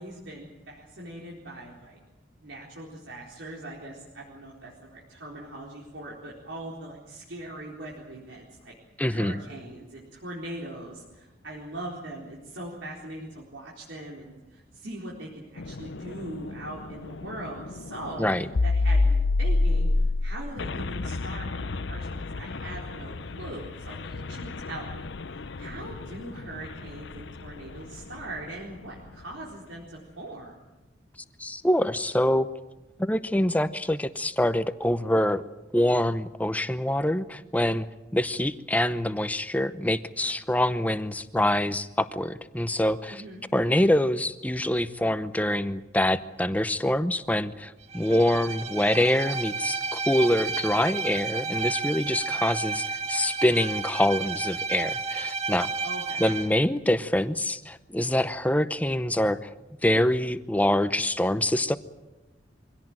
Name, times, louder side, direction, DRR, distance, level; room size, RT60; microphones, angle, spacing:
voice 1, 0.0-2.0 2.4-8.7 9.1-18.3 18.6-19.9 20.2-30.6 43.1-43.5 55.8-56.2, right 1 dB, 85° right, -4 dB, 4.2 m, -41 dB
voice 2, 9.0-9.4 18.2-18.4 31.4-32.5 33.0-35.4 35.7-37.9 38.1-43.2 43.5-55.7 56.2-59.5 59.8-61.8, left 1 dB, 10° left, 12 dB, 0.8 m, -25 dB
sound 1, 15.6-28.3, left 3 dB, 70° left, 0.7 m, -29 dB
Bowed string instrument, 47.9-56.5, right 4 dB, 35° right, 1.6 m, -31 dB
24.0 x 17.0 x 9.0 m, 1.1 s
head